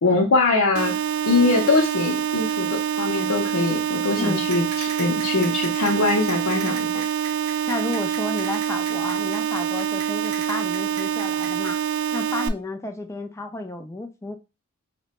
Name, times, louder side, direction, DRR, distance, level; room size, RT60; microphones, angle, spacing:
voice 1, 0.0-0.9 1.3-6.9, left 3 dB, 65° left, 0.6 m, -22 dB
sound 1, 0.8-12.5, right 8 dB, 65° right, 0.3 m, -26 dB
voice 2, 4.2-4.5 7.7-11.8 12.1-14.4, left 2 dB, 15° left, 0.4 m, -32 dB
sound 2, 4.5-11.7, right 4 dB, 85° right, 0.9 m, -37 dB
2.9 x 2.1 x 4.1 m
head